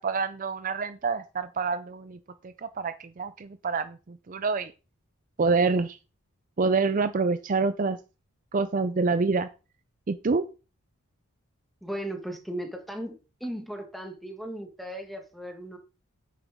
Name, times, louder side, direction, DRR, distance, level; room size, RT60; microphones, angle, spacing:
voice 1, 0.0-2.2 2.6-4.7 5.4-6.0 6.6-8.0 8.5-9.5 10.1-10.4, right 4 dB, 35° right, 0.4 m, -26 dB
voice 2, 11.8-13.1 13.4-15.8, right 1 dB, ahead, 1.5 m, -36 dB
8.9 x 8.2 x 3.6 m
head